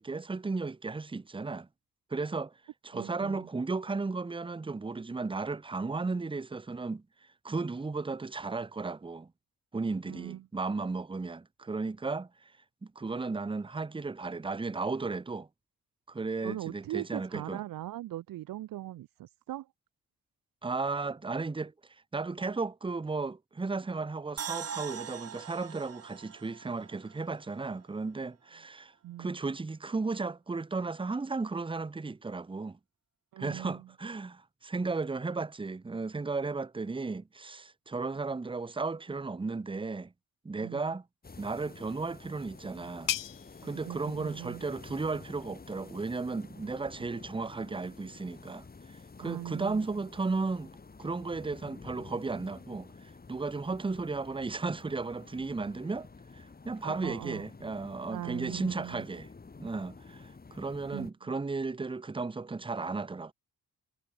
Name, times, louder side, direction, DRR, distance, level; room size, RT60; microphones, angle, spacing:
voice 1, 0.0-1.7 2.1-2.5 2.8-7.0 7.4-9.3 9.7-12.3 12.8-15.5 16.1-17.6 20.6-21.7 22.1-28.9 29.2-32.8 33.4-40.1 40.4-41.0 41.4-43.1 43.6-50.7 51.0-56.1 56.3-59.3 59.6-63.3, right 3 dB, 15° right, 1.0 m, -35 dB
voice 2, 2.9-3.5 10.0-10.5 16.4-19.7 29.0-29.3 33.3-33.9 40.6-41.0 43.6-44.6 49.2-50.0 56.8-57.4 58.1-59.0 60.9-61.1, right 14 dB, 65° right, 0.7 m, -40 dB
sound 1, 24.4-27.6 27.9-28.0, right 8 dB, 40° right, 1.6 m, -42 dB
sound 2, 41.2-61.1, left 4 dB, 25° left, 6.9 m, -50 dB
sound 3, 41.7-47.1, left 12 dB, 60° left, 1.1 m, -42 dB
cardioid pair, 125°, 36 cm